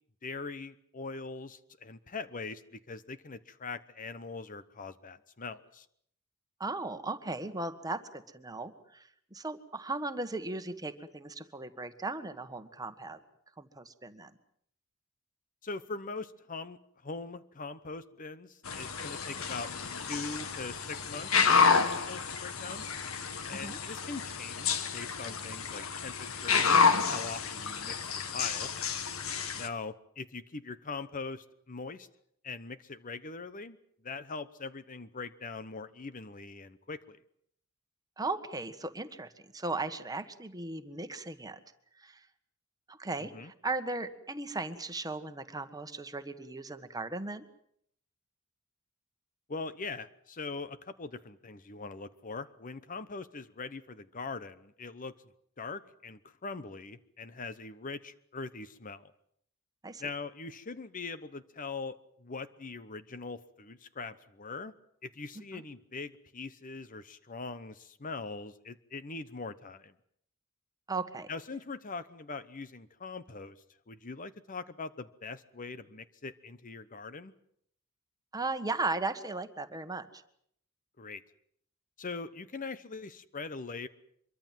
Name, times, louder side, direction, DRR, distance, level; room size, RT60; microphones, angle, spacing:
voice 1, 0.2-5.9 15.6-19.7 20.0-22.9 23.5-28.0 28.3-28.7 29.6-32.1 32.4-33.8 34.0-37.2 43.3-43.5 49.5-55.1 55.6-59.1 60.0-64.7 65.0-69.9 71.3-73.6 73.9-77.3 81.0-81.2 82.0-83.9, left 4 dB, 40° left, 13 dB, 0.9 m, -42 dB
voice 2, 6.6-13.2 13.6-14.3 23.5-23.8 38.2-41.6 42.0-42.3 42.9-47.4 59.8-60.0 65.5-65.6 70.9-71.3 78.3-80.2, right 3 dB, 20° right, 9 dB, 1.6 m, -37 dB
sound 1, 18.6-29.7, left 5 dB, 85° left, 1.8 m, -29 dB
24.5 x 23.0 x 7.5 m, 0.69 s
head